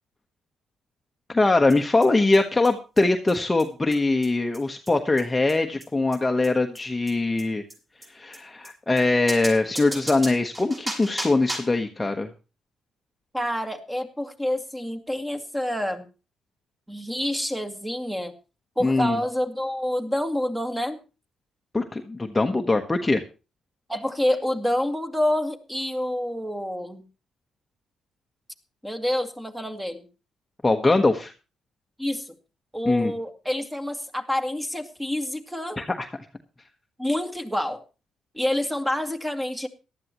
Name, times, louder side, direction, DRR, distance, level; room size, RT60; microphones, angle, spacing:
voice 1, 1.3-7.6 8.1-12.3 18.8-19.2 21.7-23.2 30.6-31.3 32.9-33.1 35.8-36.1, left 2 dB, 15° left, 4 dB, 1.1 m, -22 dB
sound 1, 1.7-1.8 2.0-2.1 2.3-2.4 2.6-2.7 3.0-3.1 3.3-3.4 3.6-3.7 3.9-4.0 4.2-4.3 4.5-4.6 4.9-5.0 5.2-5.3 5.5-5.6 5.8-5.9 6.1-6.2 6.4-6.5 6.7-6.8 7.1-7.2 7.4-7.5 7.7-7.8 8.0-8.1 8.3-8.4 8.6-8.7 9.0-9.1 9.3-11.8, right 1 dB, 25° right, 7.5 m, -35 dB
voice 2, 13.3-16.1 16.9-18.3 18.8-21.0 23.9-27.0 28.8-30.1 32.0-32.3 32.7-35.8 37.0-37.8 38.3-39.7, left 1 dB, 5° right, 6 dB, 2.0 m, -27 dB
18.0 x 12.5 x 3.0 m, 0.31 s
cardioid pair, 90°, 0 cm